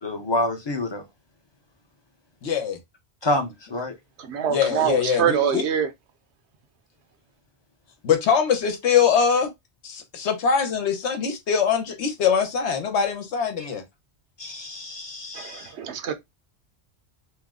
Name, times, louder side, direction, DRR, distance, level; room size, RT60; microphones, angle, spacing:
voice 1, 0.0-1.0 3.2-3.9 13.6-13.7 14.4-15.7, left 1 dB, 30° left, 0.6 m, -28 dB
voice 2, 2.4-2.8 4.5-5.6 8.0-9.5 9.8-13.8, left 7 dB, 85° left, 1.1 m, -22 dB
voice 3, 4.2-5.9 15.3-16.1, right 8 dB, 80° right, 0.9 m, -25 dB
3.0 x 2.0 x 3.5 m
omnidirectional pair, 1.1 m